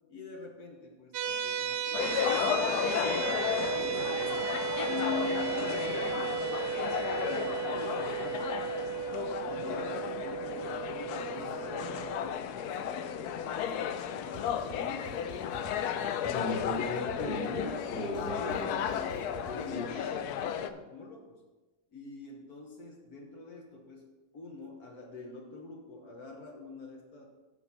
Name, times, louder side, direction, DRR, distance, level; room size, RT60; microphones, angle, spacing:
voice 1, 0.1-4.1 4.9-8.9 9.4-15.6 17.9-21.4 21.9-24.1 24.3-27.2, left 4 dB, 55° left, 1 dB, 1.5 m, -45 dB
sound 1, 1.1-12.3, right 8 dB, 75° right, 1.1 m, -35 dB
sound 2, 1.9-20.7, left 8 dB, 75° left, 0.9 m, -34 dB
sound 3, 13.9-19.7, equal, 10° left, 1.3 m, -49 dB
voice 2, 16.2-18.8 19.7-20.1, left 1 dB, 35° left, 1 dB, 1.1 m, -36 dB
6.9 x 6.5 x 5.8 m, 1.1 s
omnidirectional pair, 2.0 m